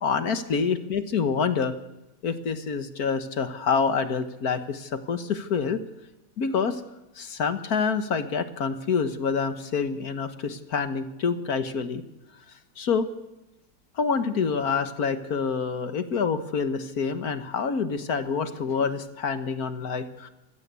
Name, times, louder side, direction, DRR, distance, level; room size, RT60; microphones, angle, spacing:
voice 1, 0.0-1.7 2.2-5.8 6.4-6.8 7.2-12.0 12.8-13.1 14.0-20.3, left 5 dB, 60° left, 10 dB, 1.7 m, -27 dB
25.5 x 15.5 x 8.3 m, 0.98 s
omnidirectional pair, 1.8 m